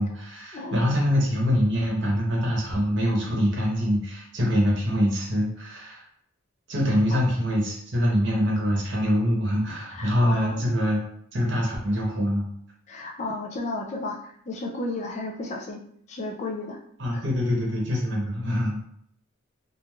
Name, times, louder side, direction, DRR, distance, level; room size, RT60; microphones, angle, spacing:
voice 1, 0.0-6.0 6.7-11.0 11.3-12.5 17.0-18.8, equal, 60° right, -2 dB, 0.9 m, -24 dB
voice 2, 9.9-10.7 12.9-16.8 17.1-17.2, left 2 dB, 35° left, 0 dB, 0.4 m, -33 dB
3.1 x 2.3 x 2.3 m, 0.65 s
head